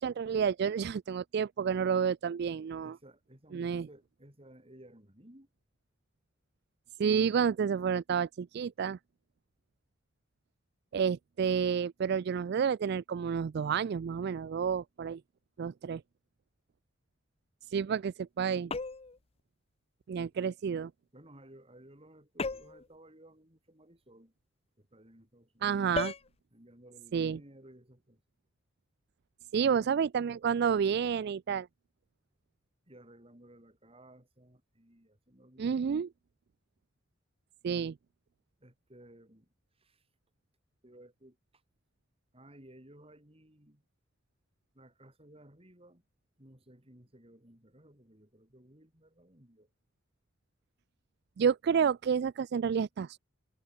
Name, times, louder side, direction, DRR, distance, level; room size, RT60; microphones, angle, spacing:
voice 1, 0.0-3.0 3.5-3.9 7.0-9.0 10.9-15.2 15.6-16.0 17.7-18.7 20.1-20.9 25.6-26.1 27.1-27.4 29.5-31.7 35.6-36.1 37.6-37.9 51.4-53.2, right 7 dB, 55° right, 0.3 m, -30 dB
voice 2, 2.8-5.5 21.1-24.3 24.8-25.9 26.5-28.2 29.5-29.9 32.9-35.9 38.6-39.5 39.8-40.0 40.8-41.6 42.3-43.8 44.7-46.0 46.4-49.7, right 1 dB, 30° right, 6.5 m, -57 dB
sound 1, 18.7-19.2 22.4-22.9 25.9-26.3, left 4 dB, 30° left, 0.7 m, -35 dB
head